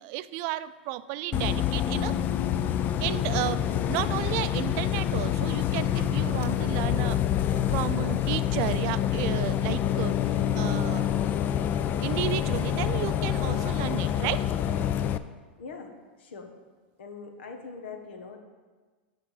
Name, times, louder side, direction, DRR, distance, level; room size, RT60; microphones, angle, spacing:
voice 1, 0.0-2.1 3.0-7.2 7.5-10.1 10.5-11.1 12.0-14.5, right 15 dB, 50° right, 14 dB, 0.4 m, -33 dB
Bus, 1.3-15.2, left 10 dB, 30° left, 0.4 m, -27 dB
voice 2, 3.6-4.0 15.6-15.9 16.2-16.5 17.0-18.4, left 4 dB, 85° left, 5 dB, 1.3 m, -42 dB
10.5 x 3.8 x 7.2 m, 1.4 s
supercardioid pair, 130°, 6 cm